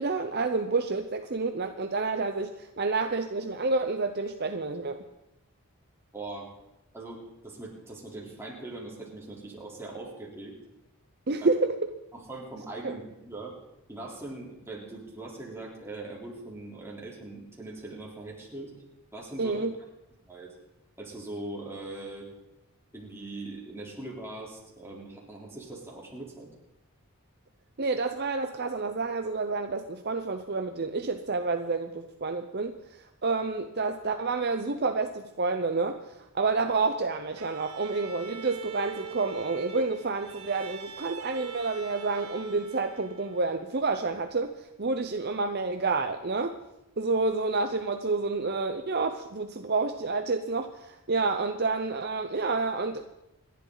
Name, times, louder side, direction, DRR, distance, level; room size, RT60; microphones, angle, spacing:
voice 1, 0.0-5.0 11.3-11.9 12.8-12.9 19.4-19.7 27.8-46.5 47.0-53.0, right 3 dB, 45° right, 6 dB, 0.7 m, -29 dB
voice 2, 6.1-6.5 6.9-10.5 11.4-11.5 12.3-13.5 13.9-18.7 19.1-19.6 20.3-20.5 21.0-22.3 22.9-26.5, right 2 dB, 10° right, -4 dB, 3.6 m, -41 dB
Bowed string instrument, 37.4-43.7, right 6 dB, 75° right, 1.3 m, -43 dB
27.5 x 11.0 x 4.0 m, 0.90 s
head